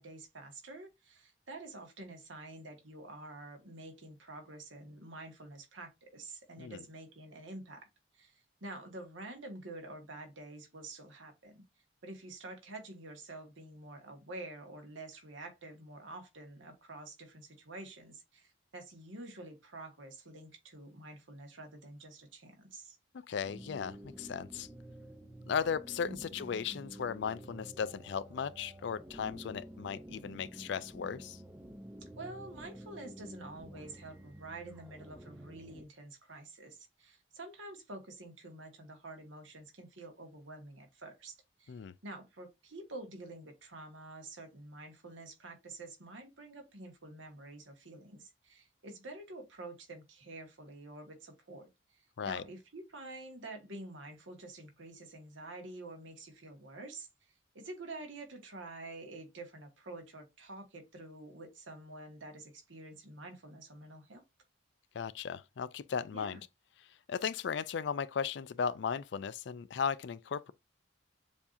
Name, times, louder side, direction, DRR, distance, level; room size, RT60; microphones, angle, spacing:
voice 1, 0.0-7.9 8.1-11.6 12.0-23.0 26.0-26.4 32.2-64.2 66.1-66.4, right 2 dB, 75° right, 1.4 m, -48 dB
voice 2, 23.3-24.7 25.5-31.4 41.7-41.9 52.2-52.4 64.9-66.4 67.1-70.5, left 6 dB, 65° left, 0.3 m, -36 dB
sound 1, 23.4-35.9, right 1 dB, 10° right, 0.4 m, -50 dB
6.9 x 2.8 x 2.5 m
head